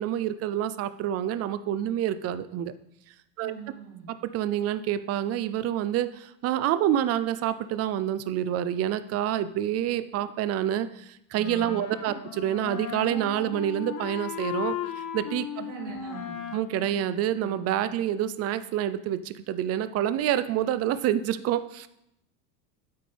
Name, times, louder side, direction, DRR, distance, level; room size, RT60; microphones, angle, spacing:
voice 1, 0.0-2.7 3.4-3.5 4.2-14.8 15.1-15.5 16.5-21.9, right 11 dB, 30° right, 14 dB, 0.5 m, -27 dB
voice 2, 3.4-4.1 15.5-16.3, right 5 dB, 60° right, -1 dB, 3.3 m, -41 dB
Wind instrument woodwind instrument, 11.3-18.0, left 8 dB, 30° left, 1.1 m, -37 dB
8.7 x 8.7 x 3.4 m, 0.78 s
supercardioid pair, 115°, 48 cm